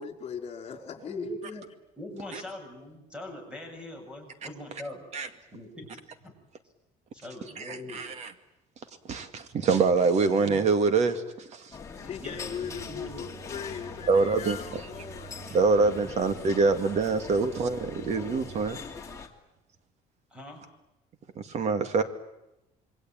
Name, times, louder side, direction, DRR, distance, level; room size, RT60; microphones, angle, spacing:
voice 1, 0.0-1.1 12.0-15.4, left 7 dB, 40° left, 4 dB, 4.8 m, -39 dB
voice 2, 1.1-1.7 2.0-5.0 5.5-5.9 6.2-6.3 7.1-8.0 12.2-13.3 16.0-16.1 20.3-20.6, left 1 dB, 5° right, 5 dB, 7.2 m, -41 dB
voice 3, 7.6-8.3 9.1-11.7 14.1-14.6 15.5-18.8 21.4-22.0, right 4 dB, 45° right, 9 dB, 2.3 m, -25 dB
sound 1, 11.7-19.3, left 5 dB, 20° left, 2.6 m, -42 dB
sound 2, 12.3-18.6, right 9 dB, 75° right, 7.5 m, -49 dB
27.0 x 22.5 x 9.0 m, 0.91 s
cardioid pair, 150°, 16 cm